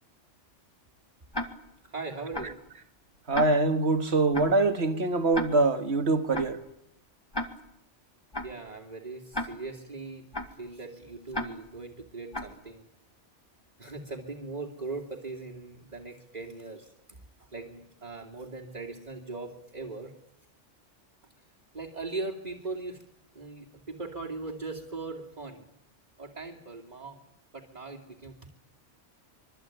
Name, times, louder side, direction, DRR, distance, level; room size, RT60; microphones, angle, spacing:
Tick-tock, 1.3-1.5 2.3-2.5 3.3-3.5 4.3-4.5 5.3-5.5 6.3-6.5 7.3-7.5 8.3-8.5 9.3-9.5 10.3-10.5 11.3-11.5 12.3-12.5, left 1 dB, 20° left, 2.1 m, -32 dB
voice 1, 1.8-2.6 8.4-12.9 13.8-17.2 17.5-20.1 21.7-23.0 23.3-25.6 26.2-28.5, right 3 dB, 35° right, 2.8 m, -40 dB
voice 2, 3.3-6.6, right 2 dB, 60° right, 2.1 m, -24 dB
25.5 x 23.5 x 9.2 m
omnidirectional pair, 1.3 m